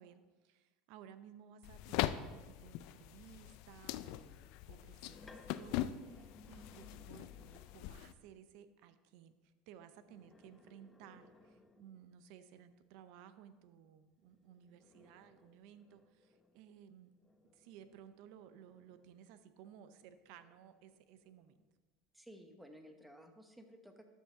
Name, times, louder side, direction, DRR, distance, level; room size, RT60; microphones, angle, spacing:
voice 1, 0.0-17.1 17.5-21.6, right 9 dB, 65° right, 11 dB, 0.6 m, -58 dB
sound 1, 1.6-8.1, left 13 dB, 65° left, 0.4 m, -42 dB
sound 2, 4.6-8.0 9.9-12.3 14.2-19.4 20.0-21.7, left 2 dB, 15° left, 0.6 m, -63 dB
voice 2, 22.1-24.1, equal, 5° right, 5 dB, 1.0 m, -56 dB
12.5 x 5.4 x 3.8 m, 1.3 s
supercardioid pair, 120°, 0 cm